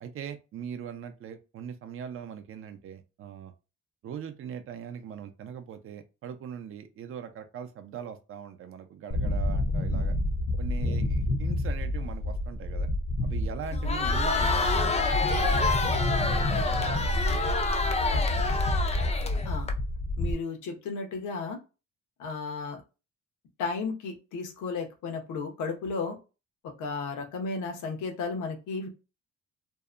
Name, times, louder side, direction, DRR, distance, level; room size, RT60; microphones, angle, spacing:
voice 1, 0.0-3.5 4.0-10.2 10.6-12.9 13.2-17.4, right 8 dB, 45° right, 0.5 m, -41 dB
sound 1, 9.1-20.3, left 1 dB, 50° left, 0.7 m, -28 dB
Crowd, 13.7-19.7, left 3 dB, 20° left, 0.4 m, -28 dB
voice 2, 20.2-21.6 22.2-22.8 23.6-26.2 26.6-28.9, left 4 dB, 80° left, 0.9 m, -34 dB
2.7 x 2.1 x 2.4 m
cardioid pair, 90°, 30 cm